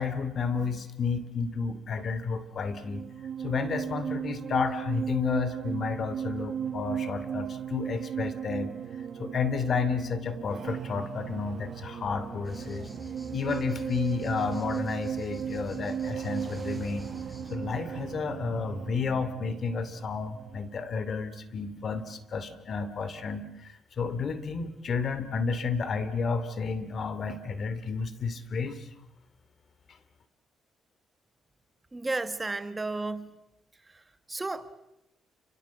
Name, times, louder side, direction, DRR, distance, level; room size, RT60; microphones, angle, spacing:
voice 1, 0.0-3.0 3.4-8.7 9.2-12.9 13.3-17.1 17.5-28.9, left 5 dB, 50° left, 2.7 m, -31 dB
sound 1, 2.6-21.1, right 8 dB, 60° right, 1.5 m, -36 dB
sound 2, 12.4-17.6, left 1 dB, 5° left, 6.2 m, -47 dB
voice 2, 31.9-33.4 33.8-34.8, right 2 dB, 20° right, 1.6 m, -34 dB
29.5 x 24.0 x 7.3 m
cardioid pair, 90°, 0 cm